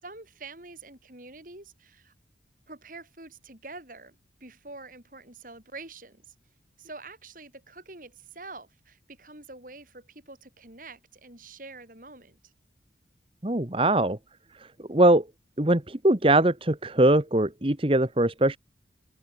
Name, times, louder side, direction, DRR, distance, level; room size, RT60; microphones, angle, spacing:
voice 1, 0.0-2.1 2.7-6.3 6.8-12.5, right 3 dB, 45° right, 5.6 m, -46 dB
voice 2, 13.4-14.2 14.6-15.3 15.6-18.6, right 1 dB, 30° right, 1.4 m, -22 dB
head